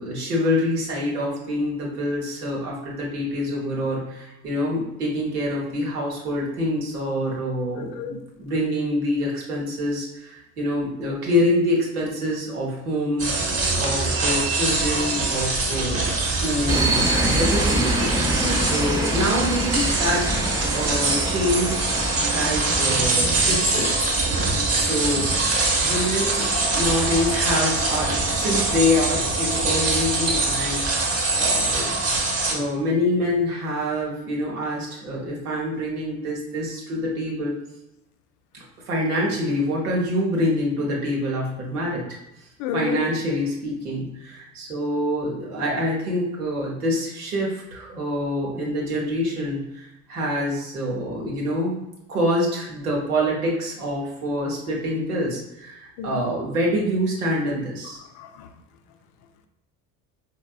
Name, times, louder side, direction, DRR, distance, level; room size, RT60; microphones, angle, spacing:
voice 1, 0.0-13.3 13.8-17.9 18.6-23.9 24.7-25.3 25.8-26.5 26.7-30.8 31.3-31.9 32.5-37.5 38.5-42.0 42.7-51.8 52.1-58.0, left 1 dB, 90° right, -3 dB, 0.8 m, -26 dB
voice 2, 7.8-8.2 18.4-18.7 42.6-43.0 56.0-56.3 58.2-58.5, left 5 dB, 65° left, 7 dB, 0.5 m, -31 dB
sound 1, 13.2-32.5, right 3 dB, 35° right, 0.9 m, -23 dB
sound 2, 16.7-29.3, right 1 dB, 10° right, 0.5 m, -28 dB
4.1 x 2.1 x 2.3 m, 0.89 s
hypercardioid pair, 55°, 43 cm